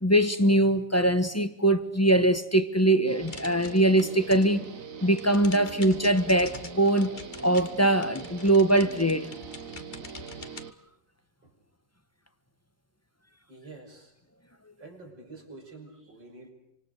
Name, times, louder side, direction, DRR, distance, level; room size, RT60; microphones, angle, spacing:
voice 1, 0.0-4.7 5.0-7.1 7.4-9.3, right 1 dB, 10° left, 0.9 m, -22 dB
Guitar, 3.1-10.7, right 6 dB, 50° right, 1.6 m, -42 dB
sound 1, 3.3-4.6 4.9-10.6, left 4 dB, 30° left, 1.3 m, -45 dB
voice 2, 13.5-14.1 14.8-16.5, right 3 dB, 75° right, 6.3 m, -47 dB
27.5 x 26.0 x 6.6 m
omnidirectional pair, 2.0 m